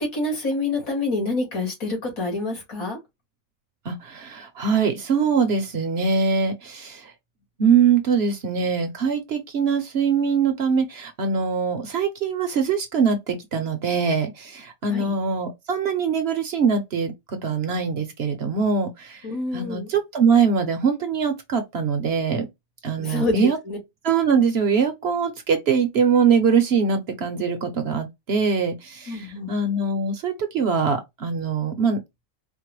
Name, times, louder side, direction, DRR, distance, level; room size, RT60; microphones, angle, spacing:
voice 1, 0.0-3.0 14.9-15.1 19.2-19.9 23.0-23.8 29.1-29.5, left 2 dB, 85° left, 2.4 m, -27 dB
voice 2, 3.9-7.1 7.6-19.2 19.5-22.5 22.8-23.6 24.0-32.0, right 5 dB, 55° right, 0.9 m, -22 dB
4.4 x 2.1 x 3.0 m
omnidirectional pair, 1.4 m